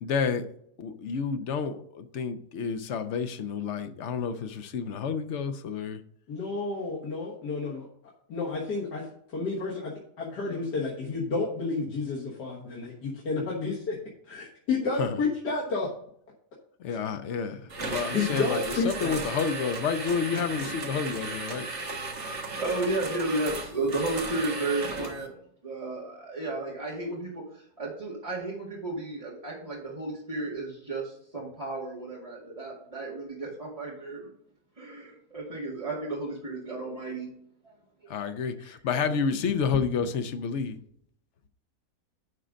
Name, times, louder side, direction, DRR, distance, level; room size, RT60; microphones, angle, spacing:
voice 1, 0.0-0.5 0.8-6.0 15.0-15.1 16.8-21.7 38.1-40.8, left 6 dB, 55° left, 0.9 m, -30 dB
voice 2, 6.3-7.9 8.3-9.1 9.3-14.0 14.3-15.9 16.9-17.0 18.1-19.2 20.3-20.8, left 3 dB, 80° left, 2.1 m, -31 dB
sound 1, 17.7-25.3, right 3 dB, 45° right, 1.5 m, -35 dB
voice 3, 22.4-25.3 25.6-34.3 34.8-37.3 37.6-37.7 38.6-39.2, right 2 dB, 20° right, 2.2 m, -33 dB
11.0 x 3.8 x 5.1 m
omnidirectional pair, 1.7 m